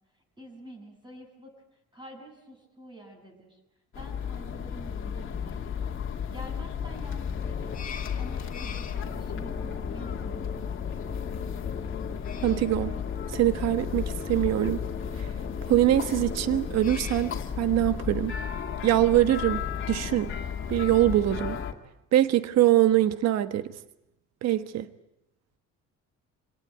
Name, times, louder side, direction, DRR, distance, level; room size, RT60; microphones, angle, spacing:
voice 1, 0.4-1.5 1.9-3.6 3.9-5.9 6.3-7.9 8.2-11.0, right 1 dB, 15° right, 7.9 m, -47 dB
sound 1, 3.9-21.7, left 7 dB, 45° left, 2.4 m, -34 dB
sound 2, 7.4-17.4, left 4 dB, 30° left, 2.1 m, -41 dB
voice 2, 12.4-13.0 13.3-14.8 15.2-15.3 15.7-18.3 18.8-20.3 20.7-21.6 22.1-23.7 24.4-24.9, right 13 dB, 60° right, 1.3 m, -23 dB
27.0 x 18.5 x 9.3 m
cardioid pair, 125°, 29 cm